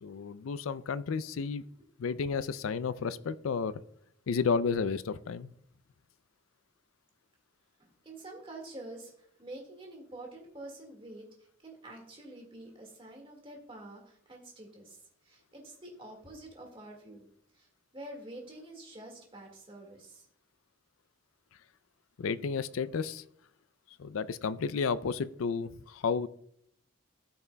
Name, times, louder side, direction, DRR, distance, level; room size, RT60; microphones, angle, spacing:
voice 1, 0.0-1.6 2.0-3.8 4.3-5.5 22.2-23.2 24.0-26.3, left 5 dB, 85° left, 16 dB, 0.4 m, -32 dB
voice 2, 7.8-9.1 9.4-11.2 11.6-15.0 15.2-17.3 17.5-17.7 17.9-20.3, right 1 dB, 25° right, 0 dB, 1.8 m, -47 dB
13.0 x 5.8 x 2.2 m, 0.70 s
head